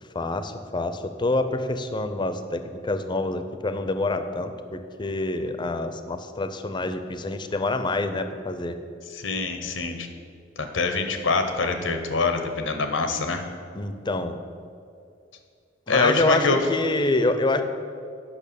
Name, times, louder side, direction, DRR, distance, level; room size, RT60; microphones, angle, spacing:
voice 1, 0.1-8.7 13.7-14.4 15.9-17.6, left 2 dB, 25° left, 9 dB, 0.5 m, -26 dB
voice 2, 9.1-10.1 10.6-13.4 15.9-16.6, left 3 dB, 90° left, 6 dB, 1.0 m, -24 dB
8.6 x 5.9 x 6.9 m, 2.3 s
head